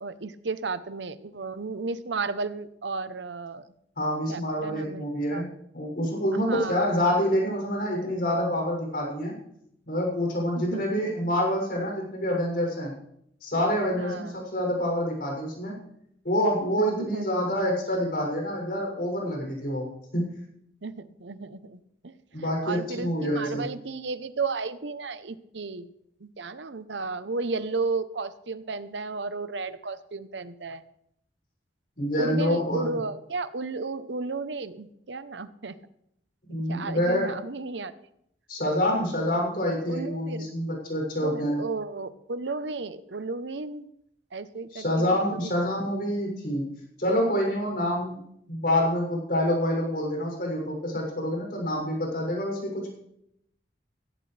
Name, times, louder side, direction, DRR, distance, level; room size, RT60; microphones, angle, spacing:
voice 1, 0.0-3.7 4.3-5.4 6.3-6.9 10.6-10.8 13.9-14.5 16.8-17.3 20.8-25.9 26.2-30.8 32.2-35.7 36.7-37.9 39.9-40.5 41.2-43.9 44.3-45.0 45.3-45.8, right 4 dB, 80° right, 13 dB, 0.8 m, -34 dB
voice 2, 4.0-5.5 5.7-9.3 9.9-12.9 13.4-15.7 16.2-20.2 22.3-23.6 32.0-33.0 36.5-37.4 38.5-41.6 44.7-46.7 47.0-52.9, equal, 55° left, -1 dB, 6.9 m, -27 dB
16.5 x 16.0 x 3.4 m, 0.74 s
head